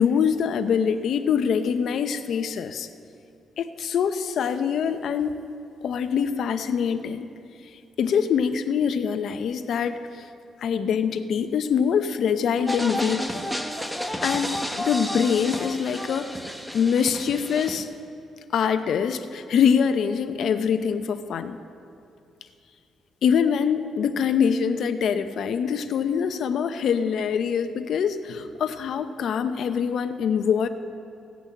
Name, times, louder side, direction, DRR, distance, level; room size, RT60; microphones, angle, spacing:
voice 1, 0.0-2.9 3.6-5.3 5.8-7.3 8.0-10.3 10.6-13.4 14.2-14.5 14.8-16.3 16.7-17.9 18.5-21.6 23.2-30.7, left 7 dB, 65° left, 9 dB, 0.7 m, -24 dB
sound 1, 12.7-17.8, left 1 dB, ahead, 0.8 m, -31 dB
16.5 x 6.1 x 8.4 m, 2.5 s
cardioid pair, 130°, 0 cm